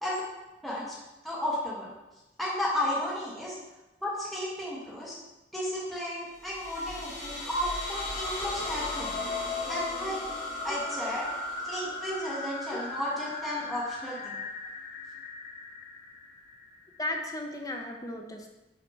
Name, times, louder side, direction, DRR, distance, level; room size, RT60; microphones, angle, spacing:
voice 1, 0.6-1.0 1.2-1.9 2.4-3.6 4.0-5.2 5.5-9.2 9.6-10.2 10.6-11.2 11.6-14.4, left 1 dB, ahead, -7 dB, 1.2 m, -33 dB
sound 1, 6.4-17.0, left 2 dB, 40° left, 1.0 m, -37 dB
voice 2, 17.0-18.5, left 1 dB, 20° left, 2 dB, 0.7 m, -36 dB
6.3 x 3.1 x 5.3 m, 0.99 s
head